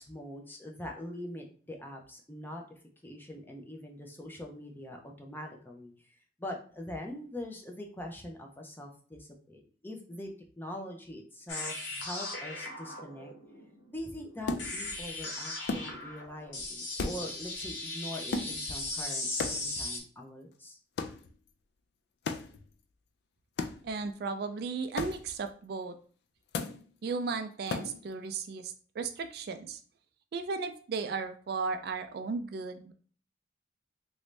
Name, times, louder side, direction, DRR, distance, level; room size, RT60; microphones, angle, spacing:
voice 1, 0.0-2.6 3.0-5.9 6.4-10.3 10.6-13.3 13.9-20.8, left 1 dB, 10° left, 1 dB, 0.5 m, -43 dB
sound 1, 11.5-20.0, left 2 dB, 75° left, 0.9 m, -38 dB
sound 2, 14.5-15.1 15.7-16.3 16.6-16.7 16.9-17.7 18.3-19.0 19.4-20.0 21.0-21.3 22.2-22.6 23.6-24.0 25.0-25.5 26.5-26.9 27.7-28.1, left 3 dB, 60° left, 0.3 m, -36 dB
voice 2, 23.8-26.0 27.0-29.8 30.3-32.9, right 4 dB, 55° right, 8 dB, 0.3 m, -35 dB
3.1 x 2.6 x 3.2 m, 0.43 s
head